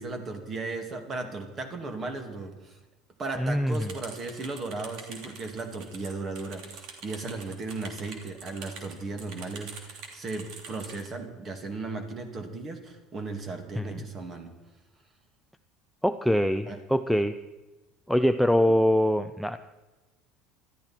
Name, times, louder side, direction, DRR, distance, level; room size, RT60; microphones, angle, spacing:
voice 1, 0.0-2.8 3.2-14.5 16.7-16.8, right 3 dB, 25° right, 5 dB, 2.5 m, -36 dB
voice 2, 3.4-3.9 13.8-14.0 16.0-17.4 18.1-19.6, equal, ahead, 8 dB, 0.5 m, -24 dB
sound 1, 3.7-11.1, right 5 dB, 55° right, 3.1 m, -45 dB
21.0 x 13.5 x 4.5 m, 1.1 s
cardioid pair, 155°, 0 cm